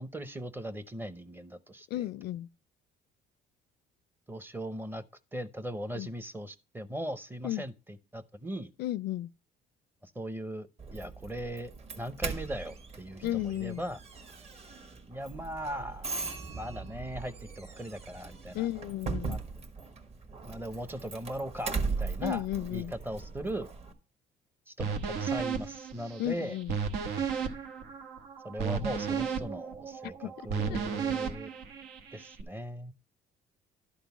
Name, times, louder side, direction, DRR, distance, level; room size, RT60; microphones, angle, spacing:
voice 1, 0.0-2.1 4.3-5.0 5.3-8.7 10.0-11.7 12.0-14.0 15.1-16.2 16.5-18.7 19.3-19.4 20.4-22.4 22.7-23.7 24.7-26.6 28.4-31.5 32.1-32.9, right 1 dB, 10° right, 0.7 m, -39 dB
voice 2, 1.9-2.5 5.9-6.1 7.4-7.6 8.8-9.3 13.2-13.8 18.5-19.4 22.2-22.9 26.2-26.7 30.2-30.3 30.7-30.9, left 14 dB, 75° left, 0.4 m, -33 dB
Doorbell, 10.8-23.9, right 4 dB, 35° right, 1.5 m, -39 dB
sound 1, 24.8-32.4, right 6 dB, 90° right, 1.2 m, -34 dB
11.5 x 3.9 x 7.0 m
cardioid pair, 110°, 17 cm